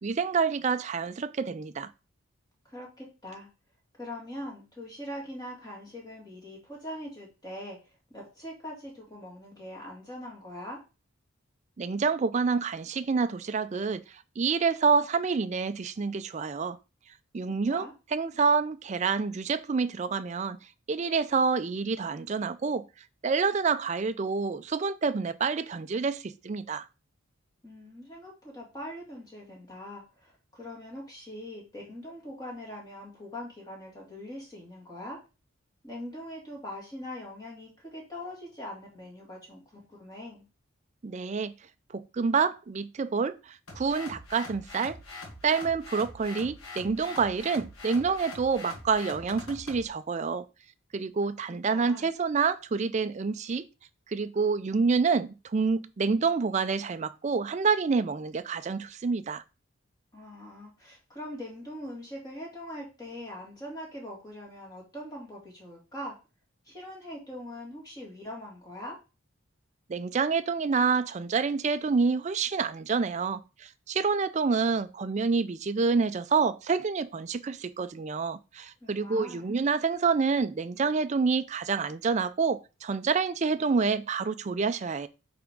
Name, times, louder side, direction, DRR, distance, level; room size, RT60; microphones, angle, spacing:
voice 1, 0.0-1.9 11.8-14.0 14.4-16.8 17.3-20.6 20.9-22.8 23.2-26.9 41.0-41.5 41.9-45.0 45.4-50.4 50.9-53.6 54.1-59.4 69.9-85.1, right 5 dB, 35° right, 0.4 m, -27 dB
voice 2, 2.7-3.5 4.0-7.8 8.1-10.8 17.4-17.9 27.6-35.2 35.8-40.4 51.5-52.1 60.1-66.2 66.6-69.0 78.8-79.5, left 1 dB, 20° left, 2.3 m, -42 dB
sound 1, 43.7-49.9, left 2 dB, 90° left, 1.4 m, -43 dB
8.6 x 3.5 x 3.6 m
head